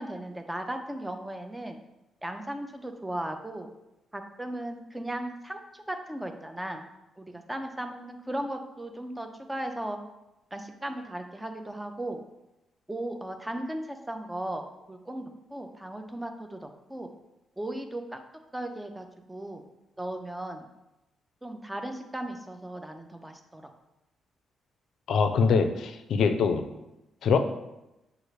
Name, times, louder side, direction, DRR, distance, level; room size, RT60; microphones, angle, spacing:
voice 1, 0.0-1.8 2.2-3.7 4.1-6.8 7.2-10.0 10.5-12.2 12.9-17.1 17.6-18.2 18.5-19.6 20.0-20.7 21.4-23.7, right 1 dB, 10° right, 6 dB, 0.5 m, -36 dB
voice 2, 25.1-26.7 27.2-27.4, left 5 dB, 70° left, 7 dB, 0.4 m, -23 dB
6.4 x 2.4 x 3.1 m, 0.95 s
cardioid pair, 95°, 0 cm